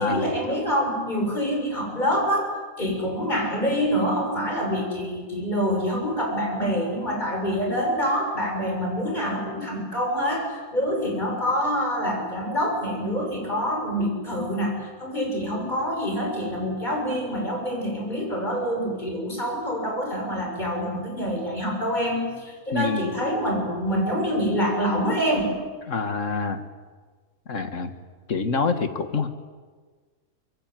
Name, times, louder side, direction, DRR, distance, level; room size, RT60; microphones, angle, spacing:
voice 1, 0.0-2.5 2.8-25.6, equal, 30° left, 1 dB, 7.2 m, -26 dB
voice 2, 22.7-23.1 25.9-26.6 27.5-27.9 28.3-29.3, left 4 dB, 55° left, 8 dB, 2.1 m, -26 dB
25.0 x 23.0 x 9.3 m, 1.5 s
omnidirectional pair, 1.6 m